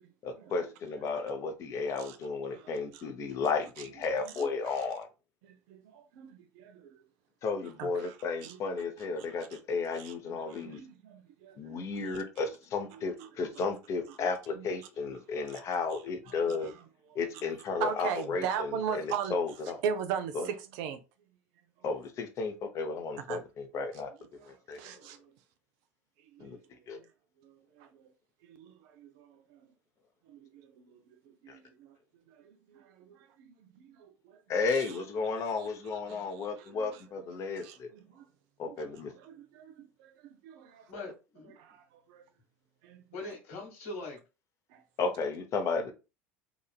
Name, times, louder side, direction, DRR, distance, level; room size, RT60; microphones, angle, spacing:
voice 1, 0.2-5.1 7.4-10.8 11.6-16.7 17.1-19.8 20.3-20.5 21.8-24.1 24.4-24.8 26.4-26.6 26.9-27.0 31.5-31.6 34.5-37.9 38.6-39.1 45.0-45.9, left 4 dB, 45° left, 0.7 m, -33 dB
voice 2, 2.5-3.0 4.2-4.5 5.4-7.0 7.8-8.1 8.4-8.6 9.9-10.1 10.5-12.2 13.2-13.3 13.6-13.7 14.6-14.7 15.5-15.6 16.5-16.6 17.8-19.4 19.8-21.0 23.3-23.4 24.8-25.2 26.3-26.5 27.4-27.9 28.4-29.6 30.3-31.9 32.4-34.4 34.7-34.9 36.1-36.3 36.6-36.9 37.6-38.2 39.2-40.9 41.6-41.8 42.1-42.2 42.8-43.0 44.7-44.8, right 7 dB, 60° right, 0.5 m, -39 dB
voice 3, 40.9-41.5 43.1-44.2, left 2 dB, 70° left, 1.3 m, -41 dB
2.9 x 2.4 x 2.2 m
hypercardioid pair, 75°, 7 cm